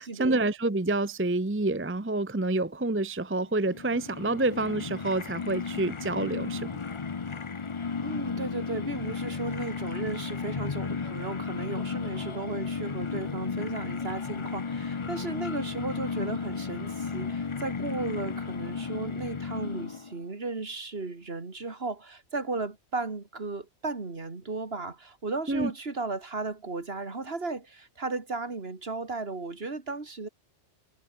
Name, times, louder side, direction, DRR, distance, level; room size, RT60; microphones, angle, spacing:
voice 1, 0.0-6.8 25.5-25.7, right 2 dB, 10° right, 0.8 m, -28 dB
sound 1, 3.6-20.2, left 5 dB, 30° left, 0.7 m, -34 dB
voice 2, 8.0-30.3, right 3 dB, 55° right, 2.7 m, -35 dB
omnidirectional pair, 1.2 m